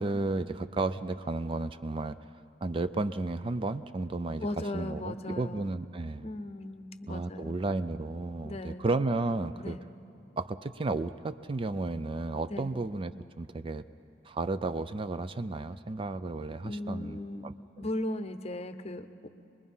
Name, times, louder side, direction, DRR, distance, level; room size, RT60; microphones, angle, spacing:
voice 1, 0.0-2.2 2.6-4.5 4.7-6.3 7.1-9.8 10.4-13.8 14.2-17.9, right 3 dB, 30° right, 12 dB, 0.4 m, -33 dB
voice 2, 4.4-5.7 6.2-7.6 8.4-8.9 9.6-9.8 12.5-12.7 16.6-17.5 17.8-19.3, left 1 dB, 35° left, 10 dB, 0.8 m, -37 dB
25.5 x 21.0 x 5.5 m, 2.8 s
head